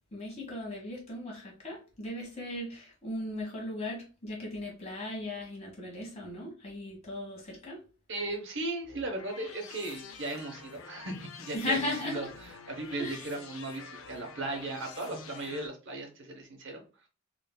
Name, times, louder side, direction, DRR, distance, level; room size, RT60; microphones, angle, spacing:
voice 1, 0.1-7.8 11.5-12.2 13.0-13.3, left 2 dB, 30° left, -1 dB, 1.3 m, -37 dB
voice 2, 8.1-16.8, right 2 dB, 60° right, 4 dB, 0.9 m, -37 dB
sound 1, 8.8-15.7, left 5 dB, 75° left, 0.5 m, -48 dB
3.8 x 2.6 x 2.2 m, 0.35 s
head